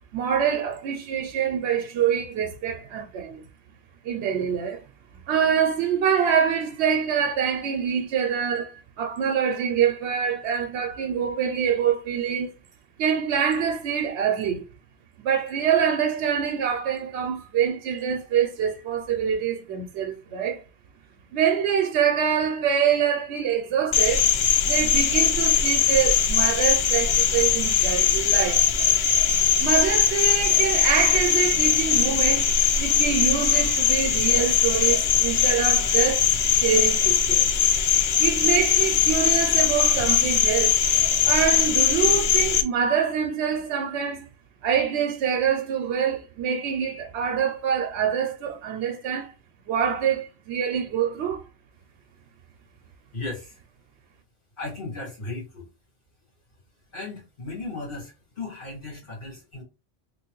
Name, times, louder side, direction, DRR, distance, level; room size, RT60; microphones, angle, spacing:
voice 1, 0.1-3.5 4.0-4.8 5.1-12.5 13.0-14.7 15.2-20.6 21.3-24.3 24.6-28.7 29.6-32.5 32.8-37.5 38.2-40.8 41.2-44.3 44.6-49.3 49.7-51.4, right 8 dB, 80° right, 0.8 m, -25 dB
Cricket, 23.9-42.6, left 8 dB, 70° left, 0.8 m, -21 dB
voice 2, 53.1-53.6 54.6-55.7 56.9-59.6, left 3 dB, 50° left, 2.0 m, -36 dB
3.4 x 2.9 x 3.0 m
omnidirectional pair, 1.1 m